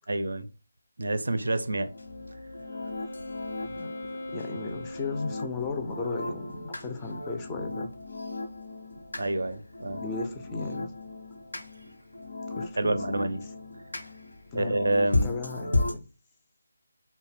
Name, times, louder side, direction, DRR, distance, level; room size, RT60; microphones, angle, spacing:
voice 1, 0.1-0.5 1.0-1.9 9.1-10.0 12.8-13.4 14.5-15.3, right 2 dB, 75° right, 0.4 m, -28 dB
sound 1, 1.8-15.9, left 2 dB, 90° left, 0.9 m, -35 dB
Wind instrument woodwind instrument, 1.8-6.1, left 1 dB, 70° left, 0.5 m, -41 dB
voice 2, 4.3-7.9 10.0-10.9 12.6-13.0 14.5-14.8 15.2-16.0, left 3 dB, 15° left, 0.3 m, -35 dB
2.6 x 2.1 x 3.3 m
figure-of-eight pair, 165°, 0 cm